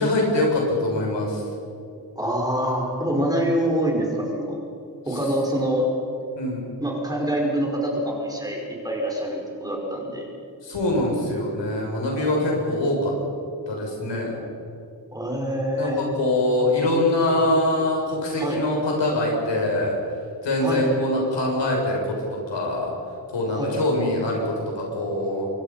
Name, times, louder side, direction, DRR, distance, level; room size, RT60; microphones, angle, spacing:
voice 1, 0.0-1.4 6.4-6.6 10.6-13.1 13.7-14.3 15.8-20.0 20.4-22.9 23.3-25.5, left 1 dB, 80° left, -1 dB, 7.3 m, -23 dB
voice 2, 2.2-4.6 5.1-5.9 6.8-10.3 15.1-16.0 18.4-18.6 20.6-20.9 23.5-23.7, equal, 10° right, -1 dB, 5.4 m, -25 dB
25.5 x 23.5 x 5.8 m, 2.6 s
wide cardioid pair, 120°, 43 cm